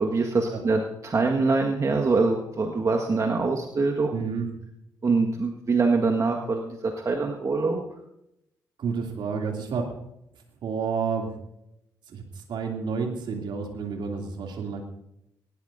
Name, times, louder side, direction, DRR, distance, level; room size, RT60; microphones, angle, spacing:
voice 1, 0.0-4.1 5.0-7.8, right 3 dB, 35° right, 2 dB, 1.7 m, -24 dB
voice 2, 4.1-4.5 8.8-9.8 10.6-11.3 12.1-14.8, right 5 dB, 55° right, 2 dB, 2.8 m, -30 dB
19.5 x 18.0 x 2.7 m, 0.82 s
figure-of-eight pair, 40°, 9 cm